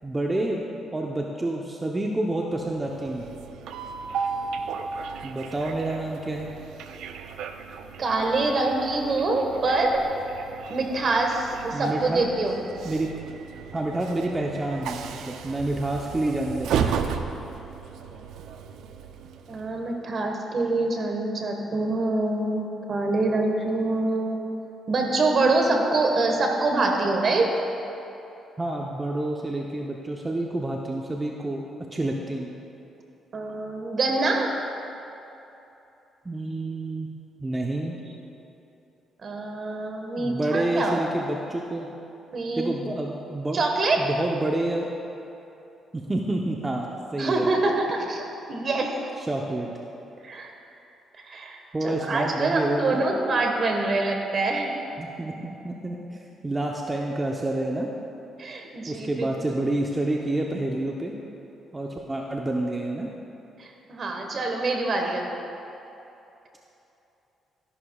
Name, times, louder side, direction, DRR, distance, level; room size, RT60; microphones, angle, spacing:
voice 1, 0.0-0.6 0.9-3.3 5.2-6.6 11.7-12.2 12.8-13.1 13.7-15.0 15.2-17.0 28.6-31.6 31.9-32.5 36.2-37.1 37.4-38.0 40.2-41.9 42.6-43.6 44.0-44.9 45.9-47.5 49.2-49.7 51.7-53.1 55.0-57.9 58.9-61.1 61.7-63.1, right 1 dB, 20° right, -1 dB, 0.7 m, -28 dB
Train, 2.7-19.9, right 6 dB, 80° right, 0.5 m, -35 dB
voice 2, 8.0-10.0 10.7-12.6 19.5-24.4 24.9-27.5 33.3-34.5 38.1-38.2 39.2-41.2 42.3-42.7 43.5-44.0 47.2-48.2 48.5-49.1 50.2-50.5 51.2-54.7 58.4-59.6 63.6-65.3, right 2 dB, 50° right, 2 dB, 1.4 m, -25 dB
13.0 x 11.0 x 2.4 m, 2.9 s
cardioid pair, 90°, 0 cm